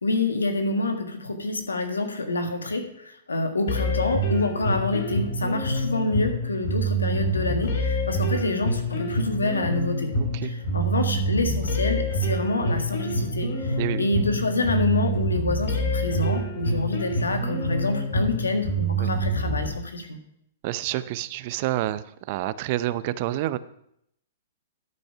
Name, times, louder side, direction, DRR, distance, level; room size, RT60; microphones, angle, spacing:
voice 1, 0.0-10.1 10.4-20.2, left 2 dB, 85° left, 6 dB, 1.5 m, -27 dB
sound 1, 3.7-19.7, right 1 dB, 65° left, 3.0 m, -26 dB
voice 2, 10.2-10.5 13.8-14.1 19.0-19.1 20.6-23.6, right 14 dB, 45° right, 16 dB, 0.5 m, -28 dB
12.5 x 5.3 x 5.5 m, 0.76 s
hypercardioid pair, 115°, 0 cm